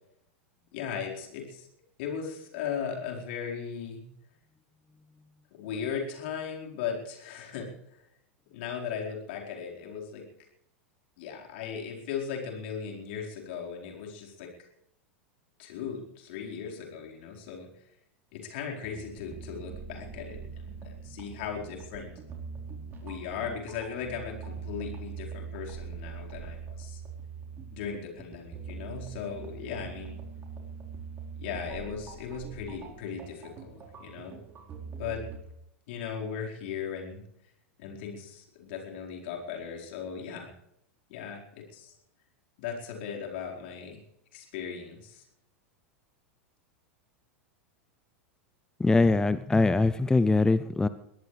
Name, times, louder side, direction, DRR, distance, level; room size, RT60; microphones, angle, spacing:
voice 1, 0.7-1.7 2.0-4.0 5.5-8.0 8.5-10.2 11.2-14.7 15.6-17.7 18.3-22.1 23.0-27.0 27.7-30.2 31.4-34.4 35.0-35.2 35.9-37.2 37.8-40.5 41.1-41.9 42.6-44.0 44.3-45.2, left 7 dB, 55° left, 0 dB, 4.7 m, -37 dB
sound 1, 18.8-35.4, right 5 dB, 30° right, 4.4 m, -43 dB
voice 2, 48.8-50.9, left 3 dB, 10° left, 14 dB, 0.5 m, -22 dB
22.5 x 18.5 x 3.4 m, 0.78 s
figure-of-eight pair, 90°, 7 cm